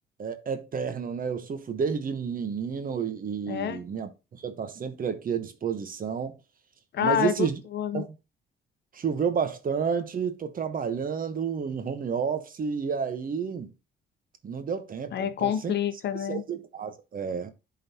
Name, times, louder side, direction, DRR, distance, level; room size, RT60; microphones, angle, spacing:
voice 1, 0.2-4.1 4.4-6.4 7.0-7.6 7.9-8.1 8.9-13.7 14.4-15.7 16.3-17.5, right 6 dB, 45° right, 1.0 m, -30 dB
voice 2, 3.5-3.8 6.9-8.0 15.1-16.4, left 9 dB, 60° left, 0.7 m, -28 dB
10.5 x 3.9 x 2.8 m
cardioid pair, 90°, 20 cm